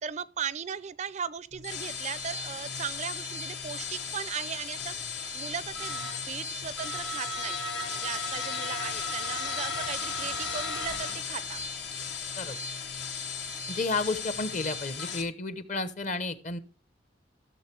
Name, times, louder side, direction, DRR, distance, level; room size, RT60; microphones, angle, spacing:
voice 1, 0.0-7.6 7.9-11.6, right 7 dB, 40° right, 0.4 m, -37 dB
sound 1, 1.5-15.2, left 4 dB, 80° left, 1.6 m, -35 dB
voice 2, 13.7-16.6, left 3 dB, 45° left, 0.9 m, -32 dB
14.0 x 6.8 x 3.3 m
head